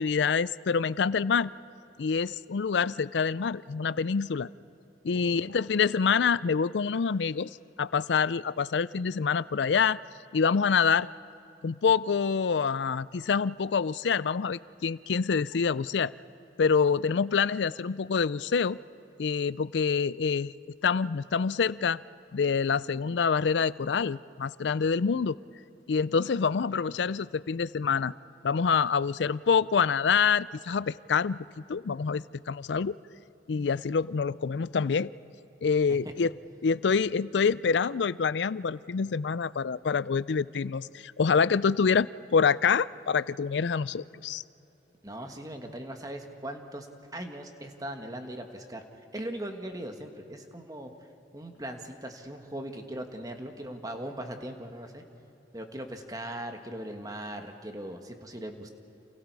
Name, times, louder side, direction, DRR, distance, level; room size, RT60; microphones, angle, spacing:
voice 1, 0.0-1.5 2.0-4.5 5.0-7.5 7.8-10.0 10.3-11.1 11.6-16.1 16.6-18.8 19.2-20.5 20.8-22.0 22.3-25.4 25.9-28.1 28.4-33.0 33.5-35.1 35.6-36.3 36.6-44.4, left 5 dB, 75° left, 19 dB, 0.5 m, -26 dB
voice 2, 45.0-48.8 49.1-50.9 51.3-55.0 55.5-58.7, right 1 dB, 20° right, 5 dB, 1.6 m, -39 dB
29.5 x 28.5 x 4.8 m, 2.9 s
head